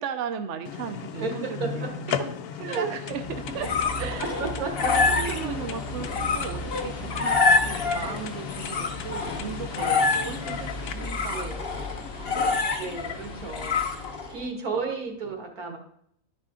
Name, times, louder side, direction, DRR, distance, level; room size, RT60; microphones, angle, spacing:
voice 1, 0.0-2.2 2.5-4.5 5.1-11.5 12.2-12.8 14.4-14.6 15.7-15.8, right 7 dB, 65° right, 8 dB, 0.9 m, -37 dB
sound 1, 0.7-10.9, left 8 dB, 85° left, 1.1 m, -37 dB
sound 2, 3.2-14.4, left 4 dB, 45° left, 1.0 m, -27 dB
voice 2, 4.0-5.6 9.8-10.1 11.3-11.7 12.2-15.8, right 4 dB, 80° right, 2 dB, 2.0 m, -34 dB
11.0 x 4.9 x 3.7 m, 0.68 s
omnidirectional pair, 1.5 m